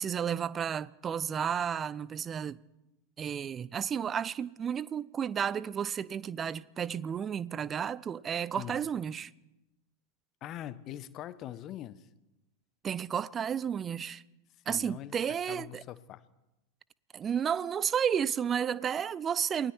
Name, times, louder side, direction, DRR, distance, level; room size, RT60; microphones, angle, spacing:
voice 1, 0.0-2.6 3.2-9.3 12.8-14.2 14.7-15.8 17.1-19.7, right 8 dB, 25° right, 0.6 m, -32 dB
voice 2, 10.4-12.1 14.7-15.2 15.5-16.2, left 12 dB, 35° left, 1.1 m, -42 dB
28.5 x 21.0 x 4.6 m
figure-of-eight pair, 90°, 0 cm